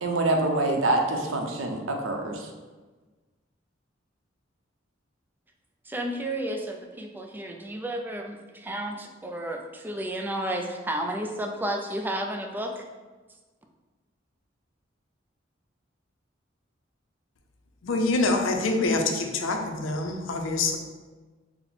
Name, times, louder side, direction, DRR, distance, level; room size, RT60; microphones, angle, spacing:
voice 1, 0.0-2.5, right 2 dB, 80° right, 2 dB, 0.6 m, -25 dB
voice 2, 5.9-12.8, right 1 dB, 10° right, 3 dB, 0.3 m, -32 dB
voice 3, 17.8-20.8, left 3 dB, 75° left, 4 dB, 0.5 m, -25 dB
4.2 x 2.0 x 4.1 m, 1.3 s
head